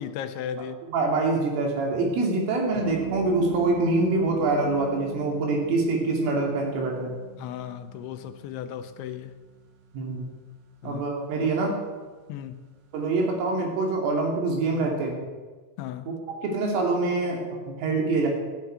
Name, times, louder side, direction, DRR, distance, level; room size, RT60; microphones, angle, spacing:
voice 1, 0.0-0.8 7.4-9.4 10.8-11.0 11.4-11.5 12.3-12.7 15.8-16.1, left 9 dB, 80° left, 3.0 m, -36 dB
voice 2, 0.9-7.2 9.9-10.3 10.8-11.8 12.9-15.2 16.3-18.3, right 3 dB, 85° right, 5.5 m, -25 dB
sound 1, 2.7-13.3, right 8 dB, 65° right, 3.0 m, -42 dB
14.0 x 10.0 x 9.3 m
omnidirectional pair, 5.6 m